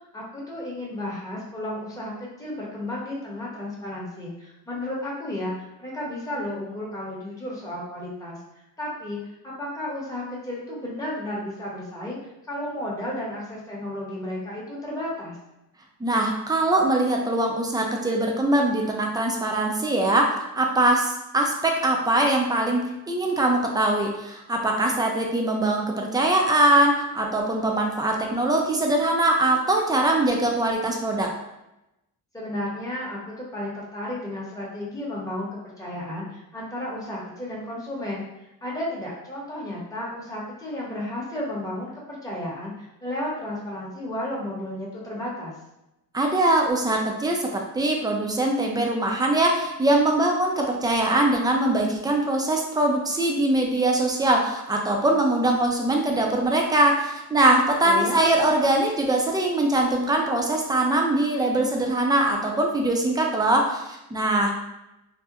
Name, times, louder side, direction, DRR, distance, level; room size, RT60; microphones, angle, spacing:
voice 1, 0.1-15.4 32.3-45.5 57.8-58.2, left 1 dB, 10° left, -5 dB, 0.8 m, -33 dB
voice 2, 16.0-31.3 46.1-64.5, right 1 dB, 10° right, 1 dB, 0.4 m, -22 dB
2.8 x 2.1 x 2.4 m, 0.91 s
cardioid pair, 85°, 39 cm